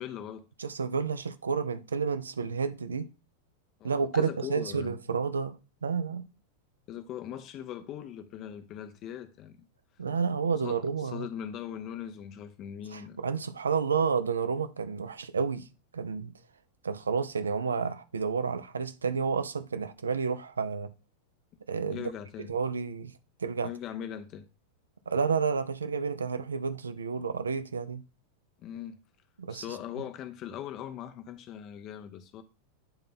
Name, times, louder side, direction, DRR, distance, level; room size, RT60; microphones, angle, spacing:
voice 1, 0.0-0.5 3.8-4.9 6.9-9.7 10.5-13.2 21.9-22.5 23.6-24.5 28.6-29.0 29.5-32.4, left 10 dB, 35° left, 0.8 m, -40 dB
voice 2, 0.6-3.1 3.8-5.6 5.8-6.3 10.0-11.3 12.9-15.7 15.9-16.3 16.8-20.9 21.7-22.1 22.4-23.1 23.4-23.7 25.1-28.0 29.4-29.6, right 5 dB, 70° right, 0.5 m, -30 dB
9.0 x 3.8 x 3.7 m
figure-of-eight pair, 90°, 0 cm